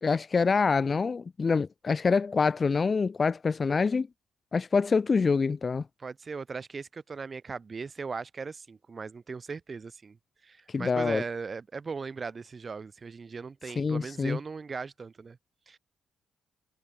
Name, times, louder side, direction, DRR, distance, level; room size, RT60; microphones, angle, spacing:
voice 1, 0.0-4.1 4.5-5.8 10.7-11.2 13.8-14.4, left 4 dB, 35° left, 1.1 m, -26 dB
voice 2, 6.0-10.2 10.4-15.4 15.7-15.8, right 4 dB, 35° right, 6.3 m, -38 dB
cardioid pair, 90°, 0 cm